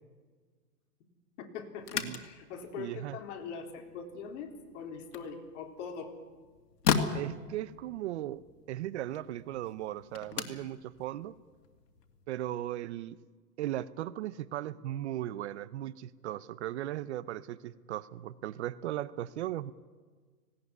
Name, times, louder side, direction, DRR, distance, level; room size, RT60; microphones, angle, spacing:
voice 1, 1.4-6.1, left 5 dB, 50° left, 3 dB, 3.9 m, -42 dB
sound 1, 1.8-12.3, left 6 dB, 85° left, 2.6 m, -38 dB
voice 2, 2.8-3.2 7.1-8.4 8.7-11.4 12.3-13.2 13.6-19.7, right 13 dB, 45° right, 18 dB, 0.7 m, -37 dB
19.5 x 18.0 x 9.6 m, 1.5 s
hypercardioid pair, 145°, 48 cm